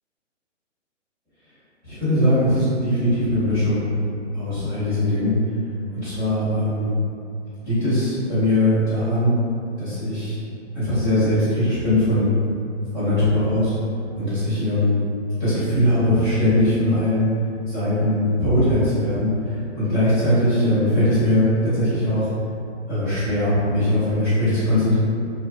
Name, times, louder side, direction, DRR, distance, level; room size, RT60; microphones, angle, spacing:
voice 1, 1.8-3.9 4.3-5.3 5.9-6.9 7.6-9.3 9.8-10.4 10.7-12.3 12.9-13.7 14.1-14.9 15.4-17.3 17.7-22.3 22.9-24.9, left 1 dB, 10° right, -23 dB, 1.5 m, -20 dB
3.3 x 2.7 x 2.3 m, 2.5 s
hypercardioid pair, 180°, 37 cm